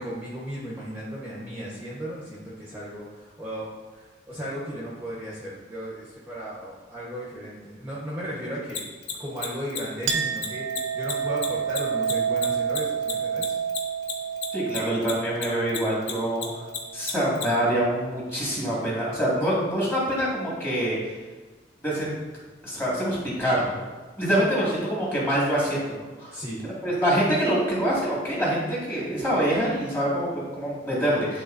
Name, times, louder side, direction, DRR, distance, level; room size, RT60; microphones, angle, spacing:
voice 1, 0.0-8.8 9.2-13.5 26.3-26.6, equal, 10° right, -8 dB, 1.1 m, -35 dB
Mechanisms, 8.7-15.4 15.7-17.4, left 8 dB, 60° left, 0.9 m, -31 dB
Chink clink, 10.1-17.1, right 7 dB, 85° right, 0.6 m, -29 dB
voice 2, 14.5-16.6 16.9-21.2 21.8-22.1 22.6-23.8 24.2-26.3 26.8-31.4, equal, 10° left, -6 dB, 2.0 m, -25 dB
11.0 x 3.9 x 2.6 m, 1.3 s
head